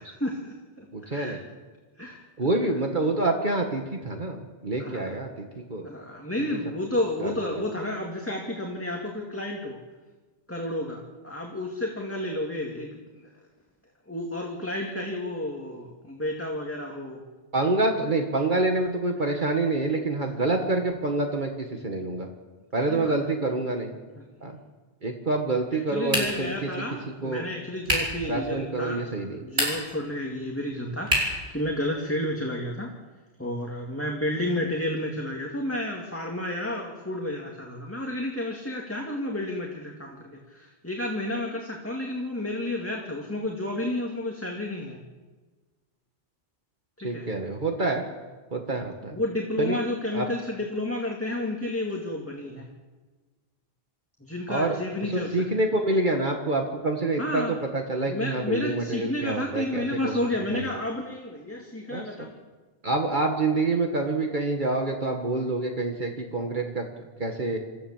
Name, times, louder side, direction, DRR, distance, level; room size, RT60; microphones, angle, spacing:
voice 1, 0.0-1.4 2.0-2.2 4.8-5.1 5.8-9.8 10.5-13.2 14.1-17.2 22.8-23.2 24.2-24.3 25.9-29.0 29.3-32.9 33.4-45.0 47.0-47.3 49.1-52.7 54.2-55.6 57.2-57.6 58.0-62.4, left 1 dB, 15° left, -1 dB, 2.2 m, -31 dB
voice 2, 0.9-1.4 2.4-5.9 7.2-7.4 17.5-22.3 22.7-23.9 24.4-24.6 25.0-26.7 27.2-27.5 28.2-29.4 47.0-48.0 48.5-49.2 49.6-49.8 50.1-50.3 54.5-54.8 55.1-60.1 60.5-60.7 61.9-62.3 62.8-66.9 67.2-67.6, right 2 dB, 50° right, 2 dB, 1.8 m, -27 dB
sound 1, 26.1-26.6 27.8-28.2 29.4-30.0 31.1-31.5, right 1 dB, 85° right, 6.2 m, -26 dB
27.0 x 14.0 x 7.3 m, 1.3 s
omnidirectional pair, 1.0 m